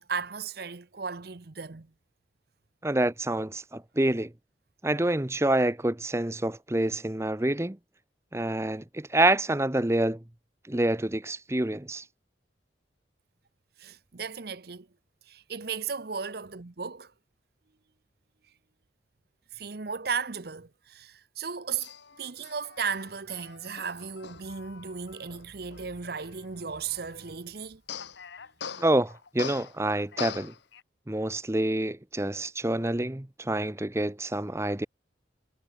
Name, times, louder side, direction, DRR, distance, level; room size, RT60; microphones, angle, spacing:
voice 1, 0.0-1.9 13.8-14.9 15.3-17.1 19.5-21.9 22.2-27.8, right 6 dB, 55° right, 0.8 m, -35 dB
voice 2, 2.8-4.3 4.8-7.8 8.3-10.2 10.7-12.0 28.8-30.5 31.1-34.9, right 1 dB, 15° right, 0.8 m, -27 dB
Male speech man speaking, 21.8-27.4 27.9-30.8, left 6 dB, 65° left, 1.0 m, -42 dB
head